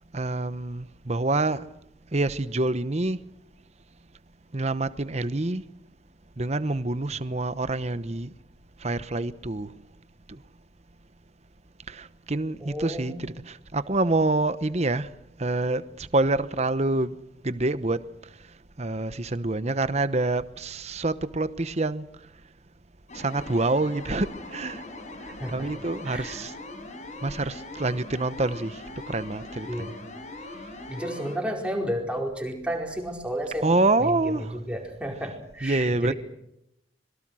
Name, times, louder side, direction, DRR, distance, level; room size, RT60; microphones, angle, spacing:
voice 1, 0.1-1.7 2.1-3.2 4.5-5.6 6.4-8.3 8.8-9.8 10.3-10.4 11.9-17.2 17.4-22.1 23.1-24.8 25.2-26.5 27.2-29.9 30.4-30.7 33.6-34.6 35.6-36.1, right 2 dB, 40° right, 1.0 m, -27 dB
voice 2, 12.6-13.2 25.4-25.7 26.0-26.4 29.7-30.0 30.9-36.1, equal, 5° right, 4.8 m, -32 dB
sound 1, 23.1-31.4, left 2 dB, 40° left, 4.5 m, -41 dB
25.5 x 22.5 x 6.3 m
head